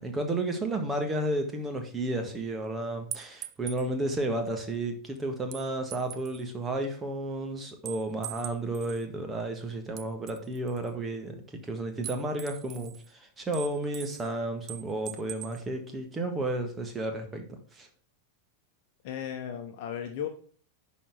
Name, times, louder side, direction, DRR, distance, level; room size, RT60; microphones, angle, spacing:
voice 1, 0.0-17.9, right 2 dB, 15° right, 1.7 m, -32 dB
sound 1, 3.1-3.9 5.5-6.4 7.9-9.0 10.0-10.9 12.0-13.1 13.5-14.3 14.7-15.6, right 12 dB, 35° right, 0.6 m, -42 dB
voice 2, 19.0-20.3, left 9 dB, 45° left, 1.1 m, -35 dB
11.0 x 4.2 x 5.9 m
figure-of-eight pair, 90°, 0 cm